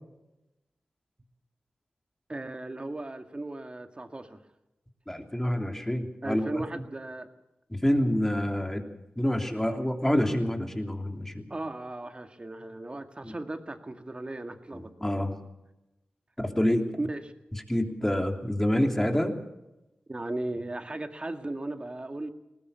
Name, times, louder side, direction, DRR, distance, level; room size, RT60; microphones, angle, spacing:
voice 1, 2.3-4.4 6.2-7.3 11.5-14.9 17.0-17.3 20.1-22.3, right 2 dB, 30° right, 6 dB, 2.0 m, -36 dB
voice 2, 5.1-6.6 7.7-8.8 9.2-11.4 13.2-13.3 14.7-15.4 16.4-16.8 17.7-19.4, left 1 dB, 10° left, 4 dB, 3.2 m, -27 dB
20.0 x 19.5 x 7.0 m, 0.94 s
wide cardioid pair, 70°, 4 cm